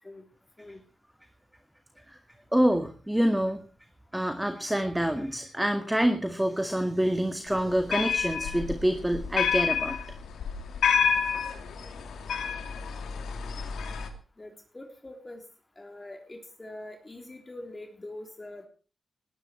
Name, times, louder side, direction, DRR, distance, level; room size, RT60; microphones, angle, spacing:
voice 1, 2.5-3.6 4.1-10.0, equal, 10° right, 7 dB, 2.0 m, -26 dB
sound 1, 7.5-14.1, left 7 dB, 90° left, 2.6 m, -29 dB
voice 2, 14.4-15.4 15.8-18.7, left 1 dB, 25° left, 3 dB, 3.5 m, -44 dB
18.5 x 14.5 x 4.5 m, 0.36 s
cardioid pair, 65°, 0 cm